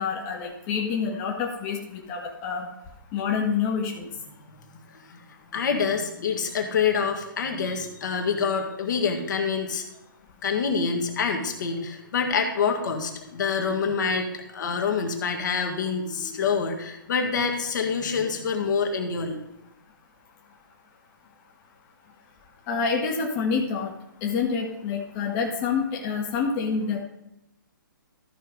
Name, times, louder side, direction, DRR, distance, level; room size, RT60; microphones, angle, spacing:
voice 1, 0.0-2.7 3.1-4.1 22.7-23.9 24.2-27.0, left 5 dB, 30° left, -1 dB, 1.4 m, -27 dB
voice 2, 5.5-9.8 10.4-19.4, left 5 dB, 60° left, 3 dB, 1.8 m, -26 dB
13.5 x 4.6 x 5.2 m, 0.89 s
figure-of-eight pair, 135°, 11 cm